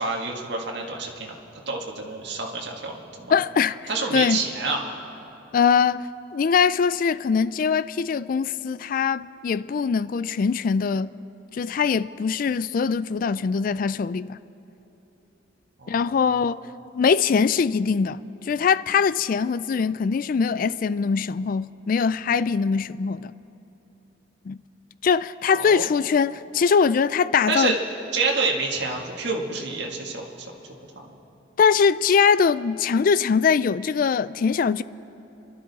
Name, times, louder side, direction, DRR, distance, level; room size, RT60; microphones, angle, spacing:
voice 1, 0.0-1.3 1.7-3.4 3.9-4.8 15.8-16.4 25.5-25.9 27.5-27.8 28.1-30.5 30.9-31.0, right 3 dB, 60° right, 1.7 m, -28 dB
voice 2, 3.3-4.4 5.5-6.1 6.3-11.1 11.5-14.4 15.9-16.6 16.9-23.3 24.5-24.6 25.0-27.8 31.6-34.8, left 6 dB, 45° left, 0.3 m, -22 dB
28.5 x 12.0 x 4.1 m
head